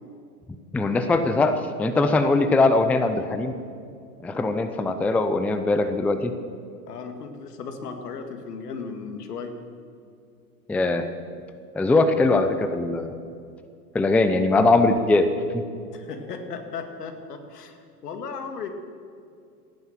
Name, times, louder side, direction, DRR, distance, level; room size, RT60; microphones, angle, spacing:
voice 1, 0.7-3.5 4.2-6.3 10.7-11.1 11.7-13.1 13.9-15.3 15.5-15.6, left 2 dB, 5° left, 9 dB, 0.5 m, -21 dB
voice 2, 6.9-9.5 15.9-18.7, left 5 dB, 75° left, 7 dB, 2.1 m, -36 dB
18.0 x 9.6 x 7.4 m, 2.4 s
hypercardioid pair, 110°, 47 cm